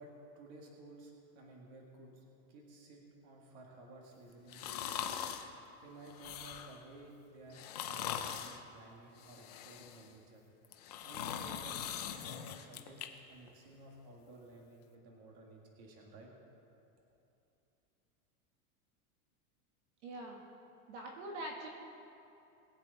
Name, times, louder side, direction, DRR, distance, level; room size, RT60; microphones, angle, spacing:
voice 1, 0.0-5.2 5.8-10.4 11.0-11.8 12.1-16.3, right 2 dB, 35° right, 0 dB, 1.8 m, -55 dB
sound 1, 4.5-5.5 6.1-6.8 7.5-8.6 9.2-10.1 10.6-13.1 13.5-13.6, left 9 dB, 30° left, 0.4 m, -41 dB
voice 2, 20.0-20.4 20.9-21.7, right 1 dB, 50° right, 0 dB, 1.7 m, -43 dB
21.0 x 8.0 x 4.0 m, 2.8 s
supercardioid pair, 180°, 44 cm